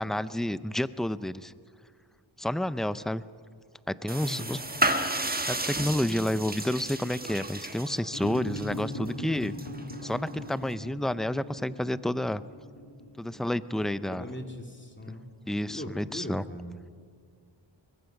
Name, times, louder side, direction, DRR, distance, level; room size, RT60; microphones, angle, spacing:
voice 1, 0.0-1.5 2.4-3.2 3.9-4.6 5.5-9.5 10.0-12.4 13.2-14.2 15.5-16.4, left 1 dB, ahead, 15 dB, 0.5 m, -30 dB
sound 1, 4.1-10.7, right 1 dB, 20° right, 1.2 m, -33 dB
voice 2, 4.2-4.6 14.1-15.3 15.7-16.8, left 1 dB, 25° left, 3 dB, 2.6 m, -40 dB
sound 2, 8.1-14.7, left 1 dB, 60° left, 2.6 m, -40 dB
22.5 x 21.0 x 5.9 m, 2.1 s
wide cardioid pair, 60°, 46 cm